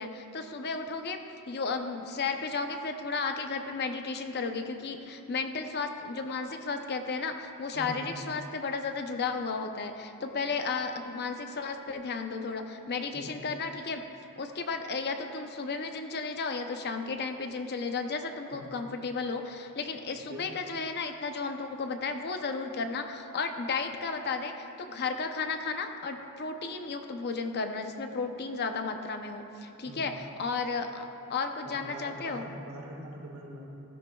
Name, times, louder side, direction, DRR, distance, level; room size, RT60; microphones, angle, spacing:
voice 1, 0.0-14.1 14.4-32.5, left 4 dB, 50° left, 6 dB, 0.7 m, -34 dB
voice 2, 7.7-8.2 13.1-13.3 18.5-18.8 20.1-20.4 29.9-30.1 31.6-33.6, equal, 75° right, -3 dB, 2.0 m, -43 dB
15.5 x 12.0 x 2.3 m, 2.7 s
head